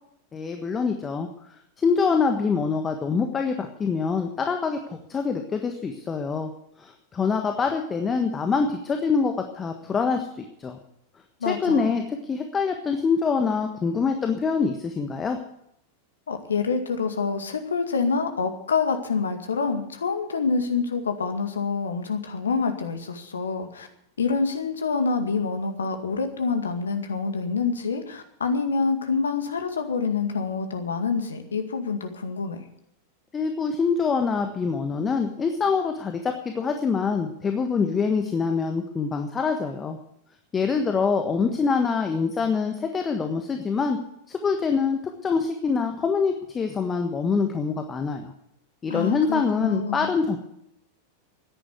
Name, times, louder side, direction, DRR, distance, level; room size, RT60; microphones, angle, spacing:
voice 1, 0.3-6.5 6.8-10.8 11.4-15.4 33.3-40.0 40.5-44.0 44.3-48.3 48.8-50.4, left 5 dB, 20° left, 5 dB, 1.4 m, -25 dB
voice 2, 11.4-11.9 16.3-23.9 24.2-32.6 48.9-50.1, left 5 dB, 70° left, 7 dB, 2.1 m, -27 dB
14.5 x 10.5 x 8.2 m, 0.76 s
figure-of-eight pair, 90°, 0 cm